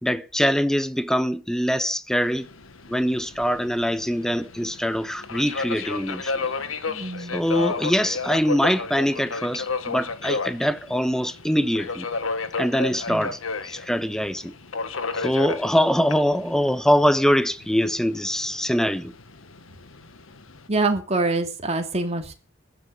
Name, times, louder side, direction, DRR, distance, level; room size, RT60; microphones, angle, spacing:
voice 1, 0.0-2.5 2.9-6.5 7.2-12.1 12.6-14.5 15.2-19.1, equal, 5° left, 1.0 m, -23 dB
Subway metro underground, 2.2-20.7, left 4 dB, 85° left, 1.6 m, -33 dB
voice 2, 6.9-7.4 13.1-13.3 20.7-22.3, right 2 dB, 35° right, 2.8 m, -25 dB
14.0 x 10.5 x 6.9 m
head